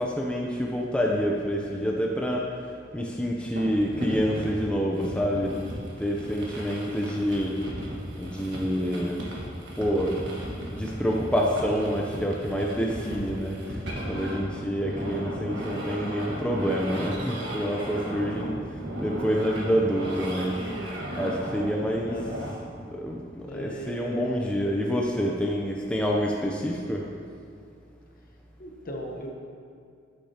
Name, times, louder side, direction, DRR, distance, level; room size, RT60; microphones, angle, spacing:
voice 1, 0.0-2.5 2.9-5.6 6.0-7.6 8.1-9.2 9.8-10.2 10.7-13.8 14.1-18.6 19.0-20.6 21.2-22.2 22.9-27.0, equal, 5° left, -2 dB, 0.5 m, -27 dB
sound 1, 3.6-22.5, equal, 65° right, 1.4 m, -36 dB
voice 2, 5.7-6.1 14.8-15.1 22.0-22.4 23.4-24.4 28.6-29.3, equal, 50° left, 1 dB, 1.0 m, -38 dB
8.9 x 8.3 x 2.8 m, 2.3 s
head